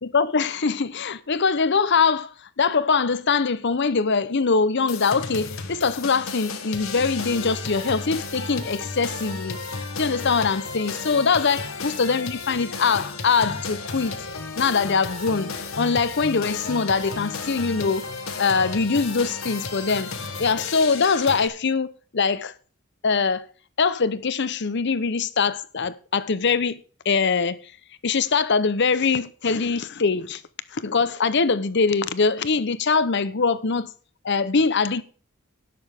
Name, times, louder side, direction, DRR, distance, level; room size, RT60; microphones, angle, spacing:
voice 1, 0.0-9.6 10.0-14.2 14.6-18.1 18.4-20.1 20.4-22.5 23.0-23.5 23.8-26.8 27.0-27.7 28.0-30.4 30.7-33.9 34.2-35.0, left 5 dB, 55° left, 0.7 m, -23 dB
sound 1, 4.9-21.5, left 4 dB, 70° left, 1.4 m, -33 dB
17.0 x 6.9 x 3.6 m
head